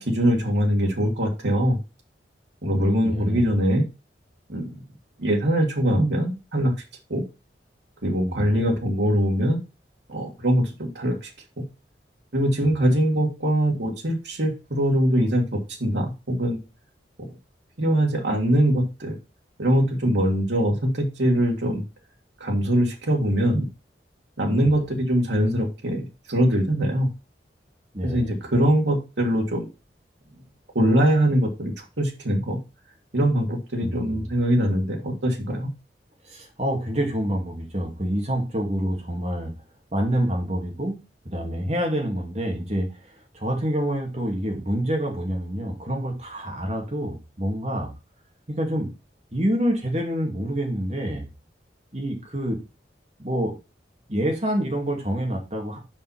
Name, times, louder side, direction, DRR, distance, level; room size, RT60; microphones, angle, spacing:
voice 1, 0.0-1.8 2.6-3.8 4.5-4.7 5.2-6.7 7.1-7.2 8.0-9.6 10.1-11.3 11.6-11.7 12.3-16.6 17.8-19.2 19.6-21.8 22.4-23.7 24.4-27.1 28.0-29.7 30.8-32.6 33.1-35.7, equal, 80° right, -1 dB, 1.8 m, -22 dB
voice 2, 2.7-3.5 8.3-8.6 24.6-24.7 27.9-28.3 33.8-34.3 36.3-39.5 39.9-41.0 41.2-42.9 43.3-47.9 48.5-48.9 49.3-51.3 51.9-52.6 53.2-53.5 54.1-55.8, equal, 35° right, 1 dB, 2.3 m, -27 dB
5.5 x 5.5 x 5.5 m, 0.28 s
head